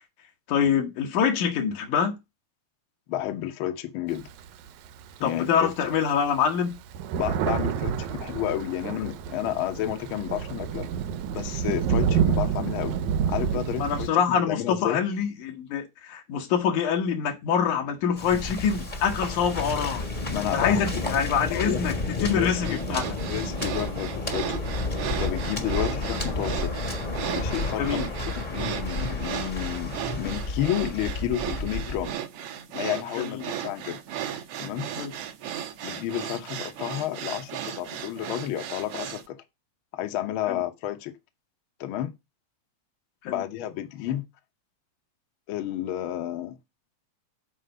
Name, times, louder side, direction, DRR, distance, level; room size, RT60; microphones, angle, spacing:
voice 1, 0.5-2.2 5.2-6.8 13.8-20.1 20.5-23.1 27.8-28.1 33.2-33.4 35.0-35.1 40.5-40.6 43.2-43.4, left 7 dB, 90° left, 2.8 m, -25 dB
voice 2, 3.1-4.2 5.2-5.7 7.2-10.9 11.3-13.0 13.3-15.0 20.3-20.8 21.5-21.8 22.2-22.8 23.3-24.6 25.2-26.8 27.3-28.0 28.4-32.1 32.7-34.0 34.6-34.8 35.8-39.4 39.9-41.1 41.8-42.1 43.2-44.2 45.5-46.6, left 12 dB, 70° left, 1.2 m, -31 dB
Thunder, 4.1-5.4 5.9-6.0 6.3-14.1, right 8 dB, 85° right, 2.1 m, -28 dB
Waves surf, 18.2-32.1, left 2 dB, 30° left, 0.8 m, -31 dB
sound 1, 22.6-39.3, right 9 dB, 65° right, 1.6 m, -35 dB
7.5 x 4.3 x 6.6 m
omnidirectional pair, 3.4 m